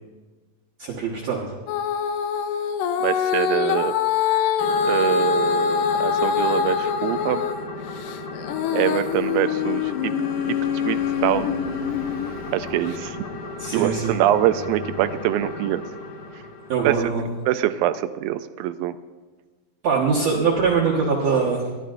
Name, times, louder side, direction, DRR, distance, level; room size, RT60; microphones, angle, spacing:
voice 1, 0.8-1.5 13.6-14.1 16.7-17.2 19.8-21.6, right 5 dB, 55° right, -5 dB, 2.2 m, -22 dB
Female singing, 1.7-7.6 8.0-12.3 12.9-13.0, left 7 dB, 80° left, 2.3 m, -24 dB
voice 2, 3.0-3.9 4.8-7.4 8.7-10.1 10.4-10.6 10.8-11.5 12.5-13.2 13.7-15.8 16.8-17.1 17.5-19.0, right 13 dB, 80° right, 12 dB, 2.2 m, -24 dB
sound 1, 4.6-17.4, left 3 dB, 60° left, 2.8 m, -36 dB
Car passing by, 7.0-17.4, left 3 dB, 45° left, 1.4 m, -44 dB
21.5 x 13.5 x 2.6 m, 1.3 s
omnidirectional pair, 4.3 m